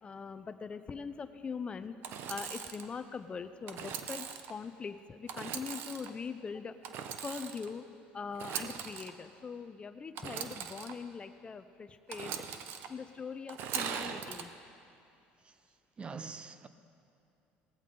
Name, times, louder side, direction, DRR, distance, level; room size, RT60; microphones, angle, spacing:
voice 1, 0.0-2.0 2.3-6.7 7.2-7.8 8.1-12.3 12.9-14.5, left 5 dB, 25° left, 0.5 m, -42 dB
Engine / Sawing, 2.0-2.9 3.7-4.5 5.3-6.1 6.8-7.7 8.3-9.1 10.2-10.9 12.1-12.9 13.5-14.4, right 8 dB, 60° right, 0.9 m, -40 dB
voice 2, 16.0-16.7, right 5 dB, 25° right, 0.6 m, -44 dB
18.0 x 15.0 x 3.8 m
cardioid pair, 120°, 4 cm